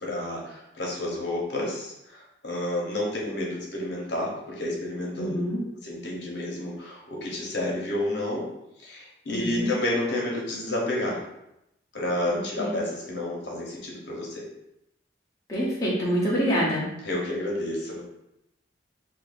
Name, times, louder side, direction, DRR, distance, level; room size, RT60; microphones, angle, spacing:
voice 1, 0.0-5.4 5.8-8.5 8.8-11.2 11.9-14.5 17.0-18.0, left 1 dB, 65° left, -3 dB, 1.0 m, -30 dB
voice 2, 5.2-5.6 9.3-9.7 12.3-12.8 15.5-16.9, equal, 15° left, -7 dB, 0.8 m, -26 dB
2.8 x 2.7 x 4.1 m, 0.84 s
head